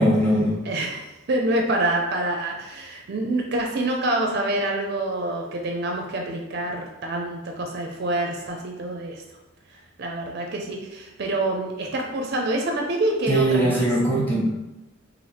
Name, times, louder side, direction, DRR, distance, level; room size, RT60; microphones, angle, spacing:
voice 1, 0.0-0.6 13.3-14.5, right 1 dB, 10° left, -6 dB, 1.0 m, -20 dB
voice 2, 0.6-9.2 10.0-13.8, right 1 dB, 50° right, 1 dB, 0.4 m, -26 dB
3.3 x 2.5 x 4.2 m, 0.97 s
head